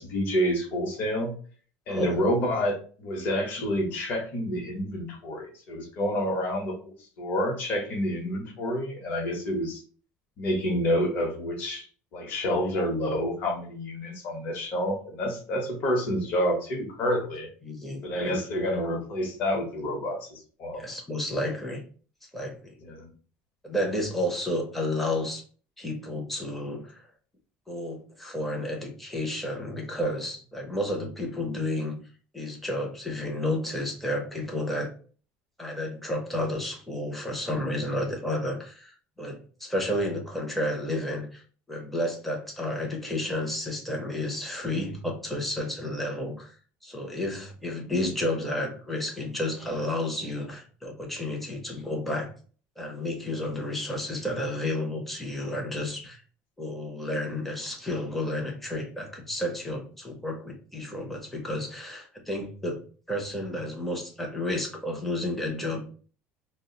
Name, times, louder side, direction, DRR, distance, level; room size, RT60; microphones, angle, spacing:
voice 1, 0.0-1.3 1.9-9.8 10.4-11.9 12.1-17.5 18.0-20.8 22.8-23.1, equal, 40° left, 1 dB, 0.8 m, -28 dB
voice 2, 17.6-18.4 20.7-21.8 22.3-22.8 23.6-25.4 25.8-27.0 27.7-32.0 32.3-34.9 35.6-38.9 39.2-41.4 41.7-46.5 46.8-52.3 52.8-56.2 56.6-62.8 63.1-65.9, left 1 dB, 5° left, 0 dB, 0.5 m, -31 dB
2.3 x 2.0 x 3.7 m, 0.41 s
cardioid pair, 170°, 5 cm